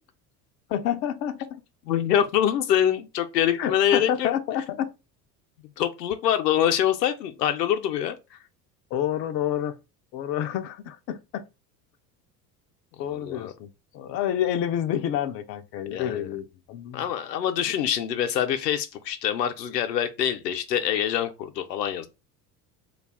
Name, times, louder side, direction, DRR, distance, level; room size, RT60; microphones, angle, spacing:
voice 1, 0.7-1.6 3.6-4.9 8.9-9.7 10.1-11.4 13.0-17.0, left 10 dB, 35° left, 0.4 m, -28 dB
voice 2, 1.9-4.3 5.8-8.2 13.1-13.5 15.9-16.4 16.9-22.1, left 10 dB, 80° left, 0.6 m, -25 dB
2.3 x 2.3 x 3.4 m
figure-of-eight pair, 70°, 48 cm